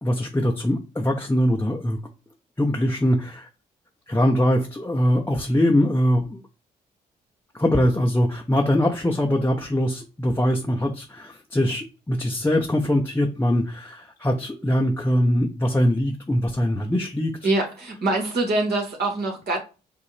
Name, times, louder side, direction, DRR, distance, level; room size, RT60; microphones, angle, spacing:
voice 1, 0.0-2.0 2.6-3.5 4.1-6.4 7.5-17.3, equal, 10° left, 0.8 m, -22 dB
voice 2, 17.4-19.6, right 2 dB, 60° right, 2.2 m, -24 dB
4.9 x 2.6 x 3.3 m
supercardioid pair, 55°, 19 cm